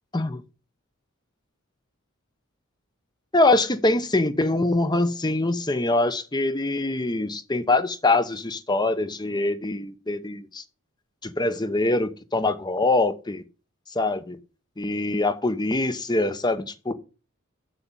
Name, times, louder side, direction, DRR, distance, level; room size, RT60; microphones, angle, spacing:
voice 1, 3.3-10.6 11.2-13.4 13.9-14.4 14.8-16.9, left 2 dB, 20° left, 0.9 m, -24 dB
8.1 x 6.9 x 7.4 m
head